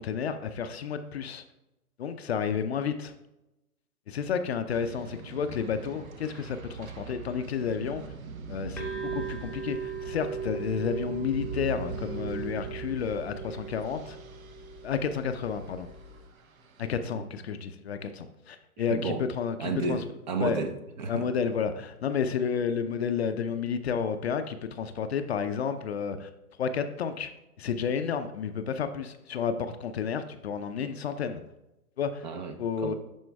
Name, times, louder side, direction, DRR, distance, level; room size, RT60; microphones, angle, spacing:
voice 1, 0.0-1.4 2.0-3.1 4.1-8.0 8.5-14.2 14.8-15.9 16.8-20.0 20.4-20.6 21.1-26.3 26.6-27.3 27.6-31.4 32.0-32.2 32.6-32.9, left 7 dB, 45° left, 9 dB, 0.5 m, -31 dB
sound 1, 4.7-17.0, right 6 dB, 65° right, 0.8 m, -43 dB
sound 2, 8.8-16.3, right 5 dB, ahead, 0.8 m, -39 dB
voice 2, 18.9-19.2 19.6-21.3 32.2-32.9, right 4 dB, 30° right, 8 dB, 0.5 m, -32 dB
11.5 x 4.4 x 2.3 m, 0.95 s
figure-of-eight pair, 120°, 46 cm